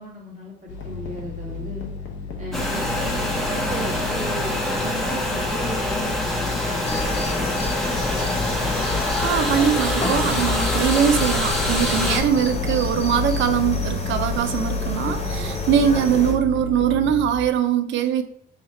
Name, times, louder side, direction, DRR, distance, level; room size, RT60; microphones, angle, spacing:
voice 1, 0.0-1.9 2.4-7.7 15.3-15.5, right 1 dB, 35° right, -4 dB, 1.5 m, -36 dB
sound 1, 0.7-17.5, left 5 dB, 70° left, 0.7 m, -32 dB
sound 2, 2.5-12.2, left 1 dB, ahead, 0.8 m, -25 dB
sound 3, 6.8-16.3, left 2 dB, 30° left, 1.1 m, -29 dB
voice 2, 9.2-18.2, right 8 dB, 70° right, 10 dB, 0.4 m, -22 dB
3.2 x 2.3 x 4.2 m, 0.67 s
cardioid pair, 90°, 20 cm